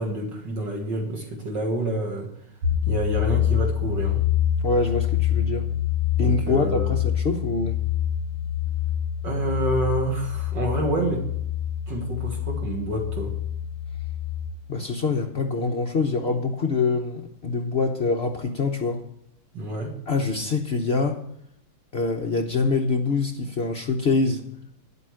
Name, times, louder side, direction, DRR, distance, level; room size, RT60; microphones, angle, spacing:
voice 1, 0.0-2.3 2.9-4.3 6.2-7.0 9.2-11.3 11.9-13.3 19.5-19.9, right 1 dB, 60° right, 1 dB, 2.2 m, -28 dB
sound 1, 2.6-14.5, left 10 dB, 85° right, 1.9 m, -26 dB
voice 2, 4.6-5.7 6.2-7.8 14.7-19.0 20.1-21.2 21.9-24.4, left 4 dB, 65° left, 2 dB, 0.6 m, -25 dB
10.5 x 8.2 x 6.3 m, 0.76 s
omnidirectional pair, 2.3 m